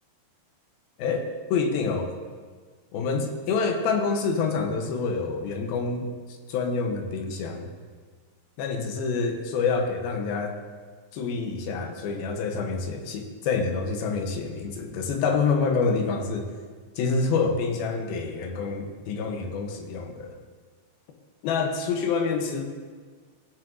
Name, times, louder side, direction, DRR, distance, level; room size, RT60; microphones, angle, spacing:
voice 1, 1.0-2.2 2.9-6.1 6.5-7.7 8.6-10.6 11.1-16.5 17.0-20.3 21.4-22.6, left 4 dB, 90° left, 4 dB, 2.8 m, -27 dB
15.5 x 7.5 x 2.6 m, 1.5 s
omnidirectional pair, 4.2 m